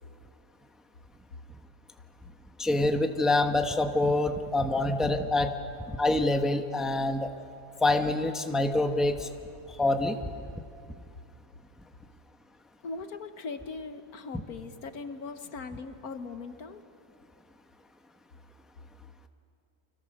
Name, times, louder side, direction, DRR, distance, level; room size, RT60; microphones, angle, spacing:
voice 1, 2.6-5.5 5.9-7.3 7.8-9.3 9.8-10.2, left 2 dB, ahead, 5 dB, 1.1 m, -26 dB
voice 2, 12.8-16.8, left 4 dB, 80° left, 9 dB, 1.7 m, -40 dB
29.5 x 26.0 x 6.6 m, 2.4 s
omnidirectional pair, 1.6 m